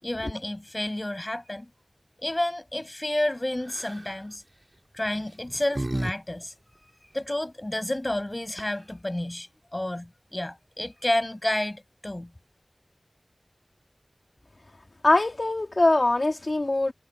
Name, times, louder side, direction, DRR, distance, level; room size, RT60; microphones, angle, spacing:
voice 1, 0.0-1.7 2.2-4.4 4.9-6.5 7.1-12.3, left 1 dB, 30° left, 6.2 m, -30 dB
sound 1, 3.7-4.1 5.1-6.1 6.4-6.5 8.2-8.3 8.5-8.9, right 1 dB, 35° right, 5.5 m, -33 dB
voice 2, 15.0-16.9, left 2 dB, 55° left, 2.3 m, -22 dB
wide cardioid pair, 50°, 0 cm